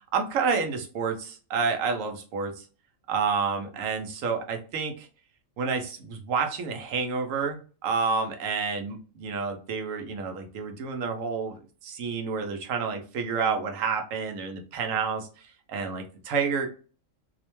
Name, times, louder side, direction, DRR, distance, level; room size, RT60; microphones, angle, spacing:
voice 1, 0.1-2.6 3.1-5.1 5.6-11.6 11.8-15.3 15.7-16.7, right 5 dB, 85° right, 4 dB, 1.0 m, -29 dB
2.8 x 2.1 x 3.0 m, 0.37 s
omnidirectional pair, 1.3 m